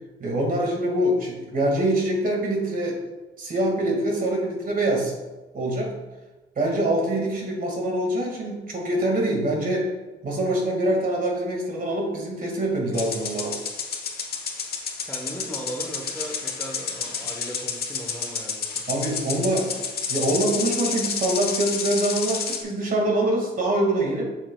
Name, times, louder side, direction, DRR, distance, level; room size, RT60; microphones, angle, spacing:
voice 1, 0.2-3.0 3.4-5.1 5.5-5.9 6.6-9.9 10.2-13.6 18.9-19.7 20.1-24.2, right 1 dB, 45° right, 0 dB, 2.0 m, -24 dB
sound 1, 12.9-22.6, left 5 dB, 50° left, 1.0 m, -30 dB
voice 2, 15.0-18.9, equal, 10° left, 0 dB, 1.1 m, -37 dB
7.3 x 6.6 x 2.3 m, 1.1 s
cardioid pair, 90°, 20 cm